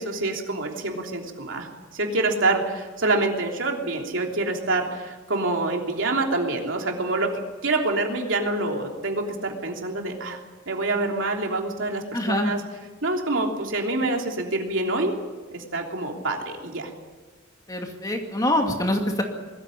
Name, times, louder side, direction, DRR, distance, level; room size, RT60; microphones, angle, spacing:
voice 1, 0.0-10.4 10.6-12.6 13.0-15.1 15.5-16.9, right 2 dB, 65° right, 1 dB, 3.2 m, -26 dB
voice 2, 12.1-12.5 17.7-19.2, left 1 dB, 15° left, 2 dB, 2.4 m, -24 dB
21.5 x 14.5 x 10.0 m, 1.3 s
head